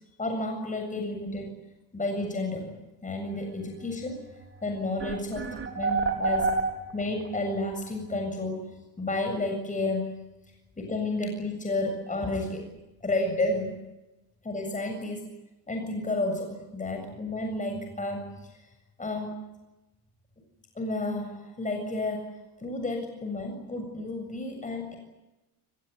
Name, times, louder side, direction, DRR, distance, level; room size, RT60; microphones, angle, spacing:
voice 1, 0.2-1.5 1.9-2.7 3.0-4.3 4.6-5.5 5.7-6.5 6.9-8.7 9.0-10.2 10.8-12.6 13.0-13.8 14.4-15.3 15.7-18.5 19.0-19.4 20.8-22.3 22.6-25.0, left 2 dB, 15° left, 3 dB, 7.5 m, -31 dB
sound 1, 4.4-4.5 5.0-7.3, right 3 dB, 30° right, 4.7 m, -27 dB
24.0 x 22.0 x 10.0 m, 1.0 s
supercardioid pair, 105°, 43 cm